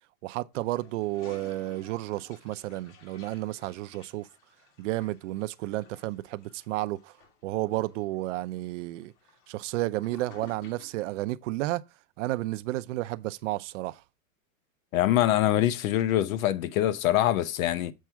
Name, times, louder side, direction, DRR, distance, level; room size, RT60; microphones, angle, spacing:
voice 1, 0.2-4.3 4.8-7.1 7.4-9.1 9.5-11.8 12.2-14.0, right 17 dB, 60° right, 0.6 m, -32 dB
Toilet flush, 0.5-11.2, left 6 dB, 50° left, 2.1 m, -55 dB
voice 2, 14.9-17.9, left 13 dB, 70° left, 0.8 m, -24 dB
7.5 x 4.7 x 4.6 m
supercardioid pair, 145°, 42 cm